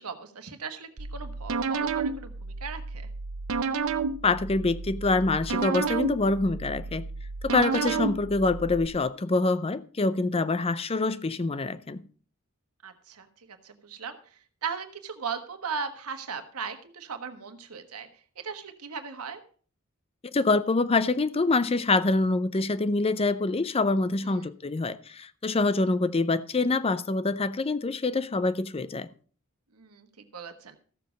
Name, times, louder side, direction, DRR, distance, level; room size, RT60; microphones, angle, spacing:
voice 1, 0.0-3.1 7.7-7.8 12.8-14.2 14.6-18.1 18.4-19.4 24.2-24.5 29.7-30.8, right 5 dB, 85° right, 1.3 m, -38 dB
sound 1, 1.0-8.9, right 4 dB, 65° right, 0.7 m, -31 dB
voice 2, 4.2-7.1 7.4-12.0 20.3-29.1, left 3 dB, 25° left, 0.5 m, -25 dB
14.5 x 7.2 x 5.1 m
head